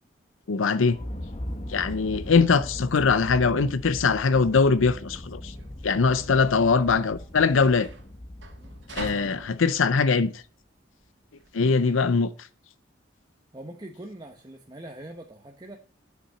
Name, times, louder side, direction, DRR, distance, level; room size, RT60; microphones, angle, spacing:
voice 1, 0.5-1.0 1.7-5.5 5.8-7.9 8.9-10.4 11.5-12.5, left 4 dB, 85° left, 0.6 m, -22 dB
sound 1, 0.8-10.4, left 1 dB, 30° left, 1.1 m, -39 dB
sound 2, 1.5-11.5, right 3 dB, 65° right, 2.2 m, -47 dB
voice 2, 13.5-15.8, right 1 dB, 20° right, 0.9 m, -42 dB
10.0 x 5.9 x 7.7 m
head